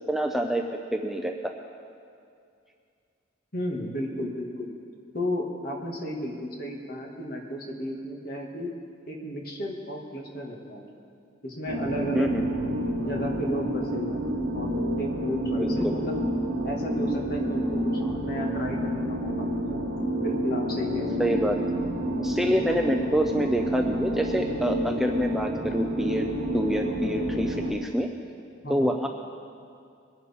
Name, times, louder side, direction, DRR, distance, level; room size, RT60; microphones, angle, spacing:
voice 1, 0.1-0.6 0.9-1.5 12.1-12.4 15.5-15.9 18.0-18.1 21.2-21.6 22.2-26.3 26.5-28.1 28.7-29.1, equal, ahead, 2 dB, 0.5 m, -27 dB
voice 2, 3.5-4.7 5.1-8.7 9.1-10.9 11.4-12.3 13.0-16.2 16.6-17.9 18.2-19.9 20.2-21.3 22.5-22.8 28.6-28.9, equal, 50° left, -1 dB, 2.0 m, -33 dB
sound 1, 11.7-27.7, equal, 75° right, 1.4 m, -29 dB
22.5 x 11.0 x 3.6 m, 2.4 s
head